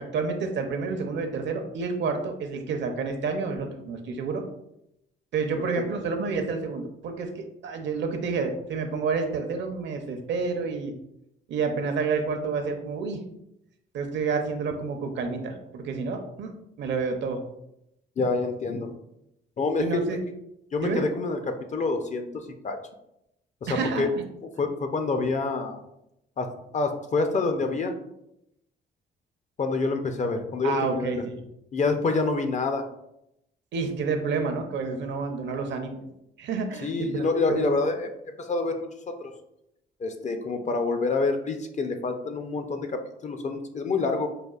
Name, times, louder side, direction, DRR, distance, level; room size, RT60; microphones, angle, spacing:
voice 1, 0.1-4.4 5.3-10.9 11.5-13.2 13.9-16.5 16.8-17.4 19.8-20.2 20.8-21.0 23.7-24.2 30.6-31.2 33.7-36.0 36.4-37.8, right 4 dB, 65° right, 5 dB, 0.6 m, -29 dB
voice 2, 18.2-18.9 19.6-20.0 20.7-22.8 23.6-24.1 24.6-25.8 26.4-26.5 26.7-27.9 29.6-31.2 31.7-32.8 36.8-38.9 40.0-44.3, left 3 dB, 35° left, 6 dB, 0.5 m, -27 dB
4.9 x 2.4 x 2.3 m, 0.82 s
cardioid pair, 90°, 20 cm